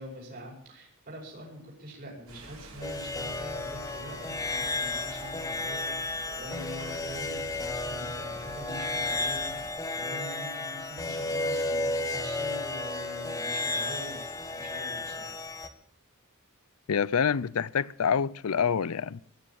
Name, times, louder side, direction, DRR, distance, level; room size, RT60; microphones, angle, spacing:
voice 1, 0.0-14.2 14.5-15.4, equal, 45° right, 5.5 m, -44 dB
sound 1, 2.3-9.7, right 2 dB, 80° right, 6.2 m, -48 dB
sound 2, 2.8-15.7, left 2 dB, 15° left, 1.3 m, -33 dB
voice 2, 16.9-19.2, left 7 dB, 90° left, 0.5 m, -27 dB
17.0 x 10.0 x 7.1 m
head